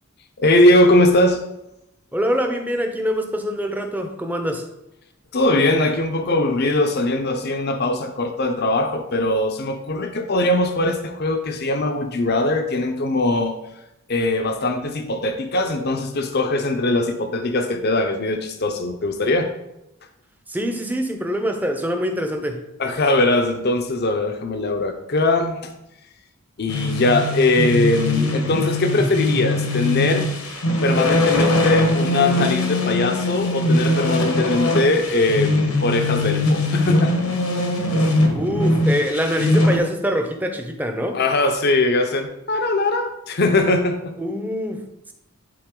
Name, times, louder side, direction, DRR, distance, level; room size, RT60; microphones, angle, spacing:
voice 1, 0.4-1.4 5.3-13.5 14.1-19.5 22.8-25.7 26.6-30.3 30.8-37.2 41.1-44.2, left 2 dB, 45° left, 0.6 m, -20 dB
voice 2, 2.1-4.7 20.5-22.6 38.3-41.2 44.2-44.9, equal, 10° right, 0.7 m, -24 dB
sound 1, 26.7-39.8, left 2 dB, 80° left, 1.3 m, -21 dB
11.0 x 3.9 x 3.8 m
head